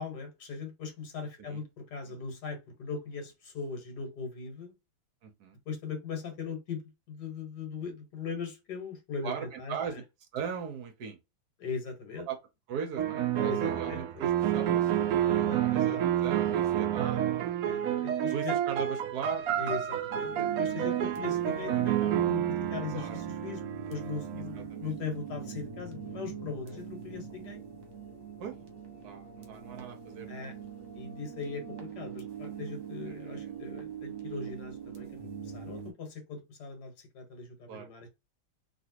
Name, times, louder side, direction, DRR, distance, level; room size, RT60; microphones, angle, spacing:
voice 1, 0.0-4.7 5.6-6.8 7.1-9.8 11.6-12.3 13.3-14.1 15.2-16.0 17.6-18.5 19.6-23.6 23.9-27.6 30.3-30.5 30.9-38.1, left 5 dB, 60° left, 1.7 m, -39 dB
voice 2, 5.2-5.6 9.2-10.0 10.3-11.2 12.3-12.4 12.7-17.6 18.3-19.7 20.3-20.6 22.9-23.2 24.7-24.9 26.7-26.8 28.4-28.5 28.9-30.5 33.0-33.5 37.7-37.9, right 7 dB, 65° right, 1.0 m, -39 dB
sound 1, 13.0-24.5, right 11 dB, 90° right, 0.7 m, -29 dB
sound 2, 20.1-35.9, right 7 dB, 50° right, 1.1 m, -42 dB
3.2 x 2.8 x 2.8 m
omnidirectional pair, 2.2 m